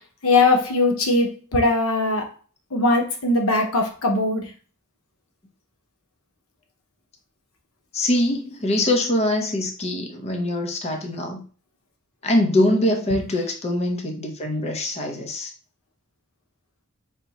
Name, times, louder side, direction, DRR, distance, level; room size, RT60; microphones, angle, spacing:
voice 1, 0.2-2.3 2.7-4.5, left 2 dB, 85° left, 3 dB, 0.9 m, -20 dB
voice 2, 7.9-11.4 12.2-15.5, left 1 dB, 30° left, 3 dB, 0.7 m, -23 dB
3.5 x 2.8 x 4.0 m, 0.39 s
head